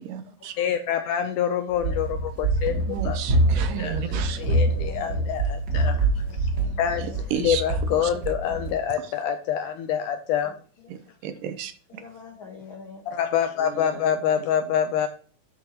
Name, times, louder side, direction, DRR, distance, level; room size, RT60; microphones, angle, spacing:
voice 1, 0.1-0.6 2.9-4.4 7.0-7.6 8.0-8.1 10.9-11.0 11.2-12.0, right 9 dB, 75° right, 2.2 m, -33 dB
voice 2, 0.6-3.2 3.6-6.5 6.8-10.5 13.1-15.1, left 9 dB, 85° left, 1.8 m, -26 dB
voice 3, 1.2-2.0 4.1-5.4 6.2-7.2 8.0-8.2 8.5-8.7 10.4-10.9 11.9-13.0 13.5-14.5, left 4 dB, 55° left, 1.5 m, -44 dB
Run, 1.7-8.8, right 2 dB, 55° right, 1.2 m, -25 dB
11.5 x 7.2 x 2.9 m
omnidirectional pair, 4.2 m